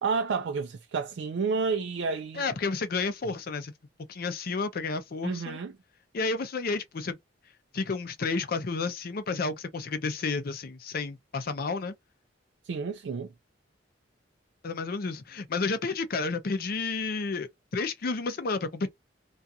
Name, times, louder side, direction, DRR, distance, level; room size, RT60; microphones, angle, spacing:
voice 1, 0.0-2.5 5.2-5.7 12.6-13.3, right 5 dB, 70° right, 0.4 m, -30 dB
voice 2, 2.4-3.7 4.1-5.6 6.1-7.2 7.7-11.9 14.6-18.9, left 4 dB, 55° left, 0.5 m, -31 dB
2.4 x 2.3 x 2.7 m
head